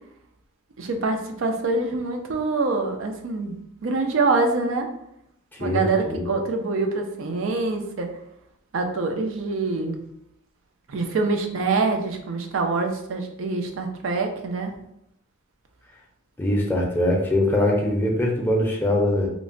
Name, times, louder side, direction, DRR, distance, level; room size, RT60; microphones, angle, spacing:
voice 1, 0.8-3.6 3.8-4.9 5.6-8.1 8.7-10.0 10.9-14.7, right 3 dB, 70° right, 4 dB, 0.4 m, -25 dB
voice 2, 16.4-19.3, left 1 dB, 10° left, -2 dB, 0.5 m, -22 dB
3.0 x 2.1 x 2.5 m, 0.77 s
head